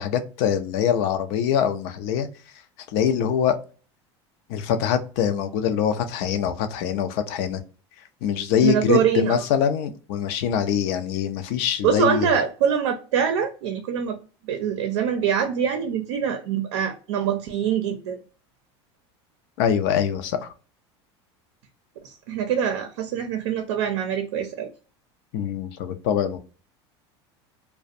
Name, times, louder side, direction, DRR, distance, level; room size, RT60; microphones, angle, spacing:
voice 1, 0.0-2.3 2.9-3.5 4.5-7.6 8.2-12.3 19.6-20.4 25.3-26.4, left 8 dB, 65° left, 0.5 m, -23 dB
voice 2, 8.6-9.4 11.8-14.2 14.4-18.2 22.0-24.7, right 8 dB, 80° right, 0.5 m, -24 dB
2.4 x 2.1 x 2.6 m
supercardioid pair, 110°, 14 cm